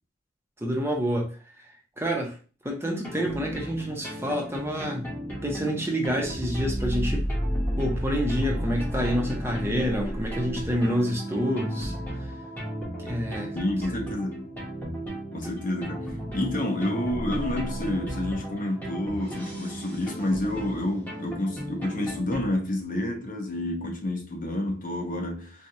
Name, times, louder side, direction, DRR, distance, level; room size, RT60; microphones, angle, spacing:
voice 1, 0.6-1.7 2.0-2.4 2.6-5.1 5.4-7.3 7.8-12.3 13.0-13.6 15.4-15.5, equal, 15° right, 0.7 m, -28 dB
sound 1, 2.8-22.5, equal, 10° left, 1.1 m, -33 dB
voice 2, 13.5-14.5 15.3-25.7, left 1 dB, 45° left, 0.8 m, -29 dB
4.5 x 2.3 x 2.7 m
head